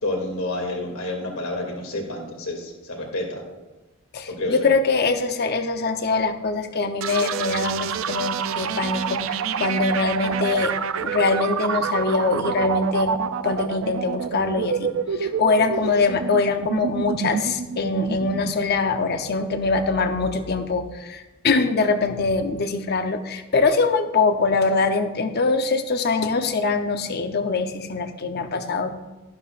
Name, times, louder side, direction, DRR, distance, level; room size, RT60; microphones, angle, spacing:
voice 1, 0.0-3.4 4.3-4.6, left 2 dB, 80° left, 0 dB, 2.6 m, -29 dB
voice 2, 4.1-13.1 13.4-29.0, left 4 dB, 50° left, 7 dB, 0.8 m, -23 dB
sound 1, 7.0-20.6, right 7 dB, 70° right, 0.4 m, -28 dB
12.0 x 11.5 x 2.5 m, 1.1 s
head